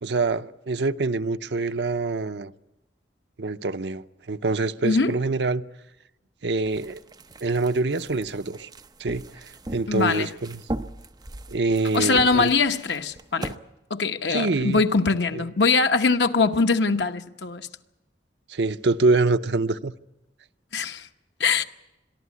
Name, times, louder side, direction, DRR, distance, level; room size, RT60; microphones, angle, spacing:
voice 1, 0.0-2.5 3.4-5.6 6.4-7.0 7.4-8.7 9.0-10.6 11.5-12.5 14.3-14.8 15.3-15.4 18.5-19.9, right 3 dB, 70° right, 0.7 m, -25 dB
voice 2, 4.8-5.1 9.9-10.3 11.9-13.6 13.9-17.7 20.7-21.1 21.4-21.6, left 4 dB, 75° left, 1.1 m, -22 dB
sound 1, 6.6-13.6, right 1 dB, 25° right, 0.7 m, -39 dB
22.5 x 14.0 x 9.5 m
head